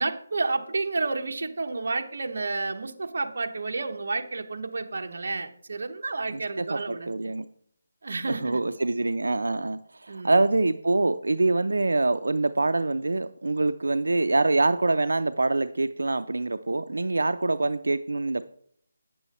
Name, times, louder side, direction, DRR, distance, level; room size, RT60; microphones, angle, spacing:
voice 1, 0.0-7.1 8.0-8.6 10.1-10.4, right 3 dB, 55° right, 4 dB, 1.0 m, -30 dB
voice 2, 6.3-7.4 8.3-18.4, right 2 dB, 90° right, 10 dB, 0.4 m, -25 dB
9.1 x 7.0 x 4.2 m, 0.64 s
figure-of-eight pair, 175°, 0 cm